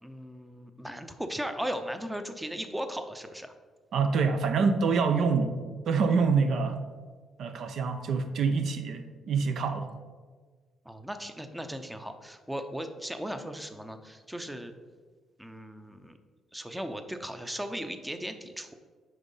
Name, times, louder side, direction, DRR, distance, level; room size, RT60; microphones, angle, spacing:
voice 1, 0.0-3.5 10.8-14.7 15.4-16.2 16.5-18.8, equal, 5° right, 7 dB, 0.7 m, -37 dB
voice 2, 3.9-5.6 5.9-6.8 7.4-9.9, right 5 dB, 70° right, 7 dB, 0.7 m, -26 dB
9.3 x 3.6 x 5.5 m, 1.5 s
cardioid pair, 90°, 0 cm